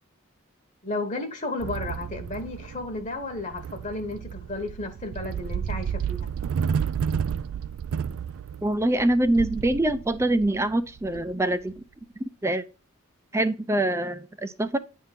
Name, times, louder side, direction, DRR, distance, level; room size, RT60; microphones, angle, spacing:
voice 1, 0.8-6.3, left 2 dB, 35° left, 1.1 m, -33 dB
sound 1, 1.6-11.8, right 7 dB, 80° right, 0.3 m, -32 dB
voice 2, 8.6-11.7 12.4-12.6 13.3-14.8, right 1 dB, 15° right, 0.4 m, -24 dB
9.9 x 3.7 x 5.7 m
head